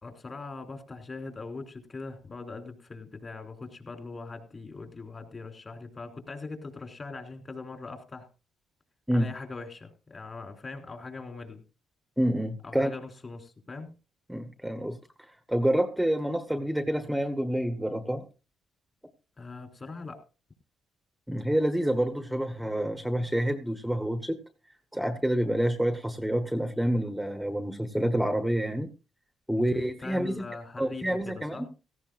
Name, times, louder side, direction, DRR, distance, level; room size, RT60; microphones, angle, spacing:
voice 1, 0.0-8.3 9.1-11.6 12.6-13.9 19.4-20.2 29.6-31.7, left 3 dB, 35° left, 4 dB, 3.4 m, -41 dB
voice 2, 12.2-12.9 14.3-15.0 15.3-18.2 21.3-24.4 24.9-28.9 29.5-30.4 30.8-31.7, right 1 dB, 5° right, 8 dB, 1.2 m, -28 dB
17.0 x 15.0 x 2.5 m, 0.32 s
cardioid pair, 90°, 0 cm